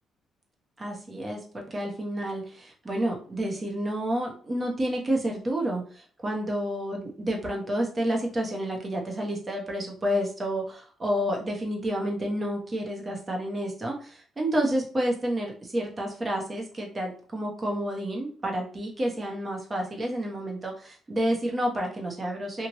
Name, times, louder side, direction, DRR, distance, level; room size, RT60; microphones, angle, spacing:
voice 1, 0.8-22.7, right 1 dB, 30° right, 0 dB, 1.0 m, -30 dB
3.1 x 2.5 x 2.9 m, 0.43 s
cardioid pair, 90°, 0 cm